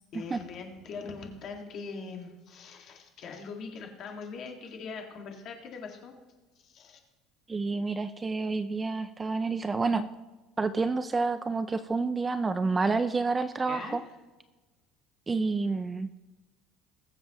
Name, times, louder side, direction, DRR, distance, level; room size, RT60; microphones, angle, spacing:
voice 1, 0.1-6.2 6.6-7.0 13.7-14.0, left 4 dB, 40° left, 2 dB, 1.9 m, -42 dB
voice 2, 7.5-10.1 10.6-14.0 15.3-16.1, right 4 dB, 15° right, 11 dB, 0.3 m, -29 dB
21.0 x 7.3 x 3.0 m, 1.2 s
cardioid pair, 160°, 0 cm